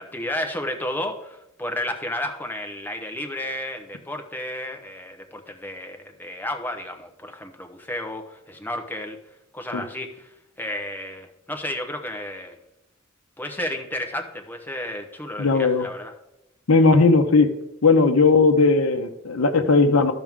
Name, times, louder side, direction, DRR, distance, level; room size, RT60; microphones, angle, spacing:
voice 1, 0.0-9.2 9.5-12.6 13.4-16.1, left 1 dB, 10° left, 4 dB, 0.9 m, -32 dB
voice 2, 15.4-15.9 16.7-17.5 17.8-20.1, left 3 dB, 80° left, 5 dB, 0.8 m, -17 dB
12.5 x 6.0 x 3.6 m, 0.85 s
head